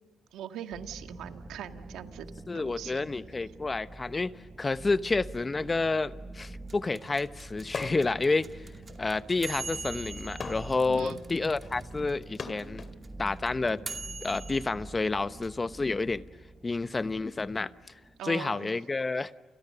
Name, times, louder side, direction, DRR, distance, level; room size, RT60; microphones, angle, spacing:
voice 1, 0.3-3.1 10.9-11.2 18.2-18.7, right 10 dB, 85° right, 6 dB, 1.9 m, -41 dB
sound 1, 0.7-18.2, right 2 dB, 10° right, 6.7 m, -46 dB
voice 2, 2.5-4.3 4.6-8.7 9.0-12.9 13.2-13.8 14.2-16.2 16.6-17.7 18.2-19.3, left 3 dB, 25° left, 13 dB, 1.0 m, -29 dB
sound 2, 6.7-11.8 12.1-12.2 12.3-14.7, right 4 dB, 30° right, 2.4 m, -41 dB
sound 3, 7.7-8.2 8.6-13.0 13.8-15.5, left 4 dB, 45° left, 2.4 m, -42 dB
30.0 x 29.0 x 6.8 m, 1.3 s
cardioid pair, 90°, 0 cm